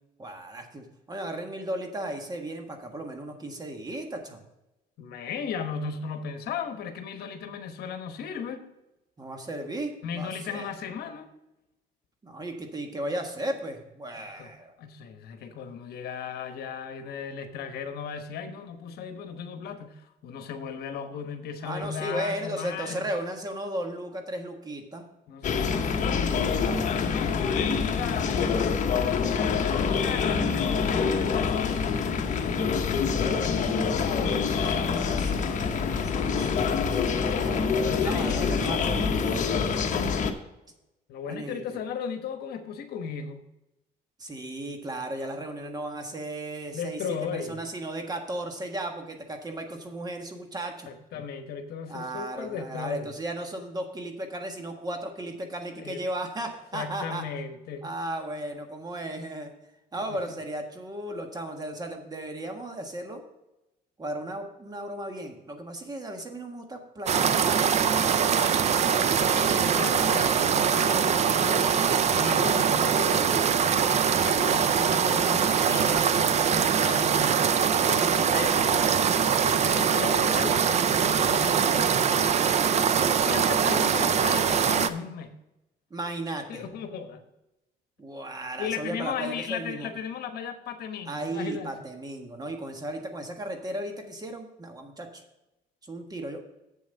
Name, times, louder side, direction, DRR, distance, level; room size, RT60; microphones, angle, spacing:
voice 1, 0.2-4.4 9.2-10.7 12.2-14.7 21.6-25.1 34.6-40.0 41.3-41.8 44.2-47.0 47.3-50.9 51.9-57.2 57.8-59.5 59.9-63.2 64.0-68.7 69.3-69.8 77.7-78.0 85.9-86.6 88.0-89.9 91.1-95.2 95.9-96.4, right 1 dB, 25° right, 4 dB, 1.5 m, -36 dB
voice 2, 5.0-8.6 10.0-11.3 14.1-14.5 14.8-23.1 25.3-31.9 32.3-35.7 37.7-38.8 41.1-43.5 46.7-47.6 50.9-53.1 55.8-56.0 56.7-57.9 59.9-60.2 69.2-71.8 72.1-73.9 74.2-77.4 77.9-79.0 79.4-82.6 83.2-85.3 86.5-87.2 88.6-91.8, left 6 dB, 70° left, 7 dB, 1.1 m, -36 dB
sound 1, 25.4-40.3, left 5 dB, 50° left, 1.0 m, -26 dB
sound 2, 67.1-84.9, right 7 dB, 40° right, 0.6 m, -23 dB
7.7 x 7.2 x 5.3 m, 0.93 s
cardioid pair, 110°, 17 cm